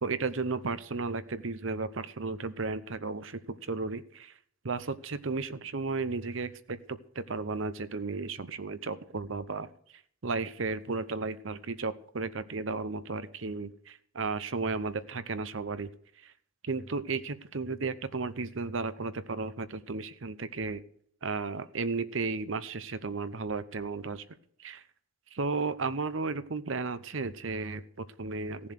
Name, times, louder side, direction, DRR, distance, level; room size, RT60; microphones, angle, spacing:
voice 1, 0.0-4.3 4.6-6.8 7.1-9.7 10.2-15.9 16.2-16.3 16.6-20.8 21.2-24.2 24.6-24.8 25.3-28.7, right 4 dB, 70° right, 13 dB, 0.8 m, -34 dB
15.5 x 7.2 x 6.4 m, 0.63 s
head